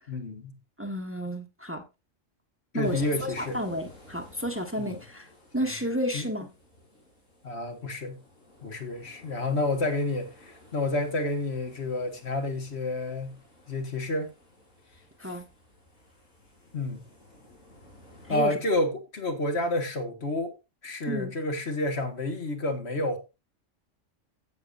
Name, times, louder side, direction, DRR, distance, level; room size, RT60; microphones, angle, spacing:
voice 1, 0.1-0.6 2.7-3.6 4.8-5.0 6.1-6.3 7.4-8.2 8.6-13.3 13.7-14.3 15.2-15.3 16.7-17.0 18.3-20.5 20.8-23.2, left 2 dB, 60° left, 1.9 m, -29 dB
voice 2, 0.8-1.8 2.7-5.3 5.5-6.5 15.2-15.4 18.3-18.6 21.1-21.3, equal, 10° right, 1.4 m, -31 dB
sound 1, 2.8-18.4, left 1 dB, 85° left, 4.7 m, -54 dB
15.5 x 6.8 x 2.6 m
omnidirectional pair, 1.3 m